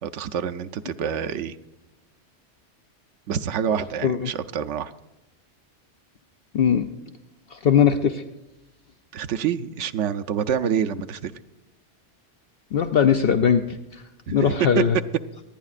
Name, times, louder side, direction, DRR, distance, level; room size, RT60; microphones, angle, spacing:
voice 1, 0.0-1.6 3.3-4.9 9.1-11.3 14.3-14.8, right 8 dB, 80° right, 9 dB, 0.9 m, -27 dB
voice 2, 6.5-6.8 7.5-8.2 12.7-14.0 14.3-15.0, left 7 dB, 60° left, 7 dB, 0.8 m, -20 dB
27.0 x 9.5 x 2.5 m, 1.0 s
omnidirectional pair, 1.2 m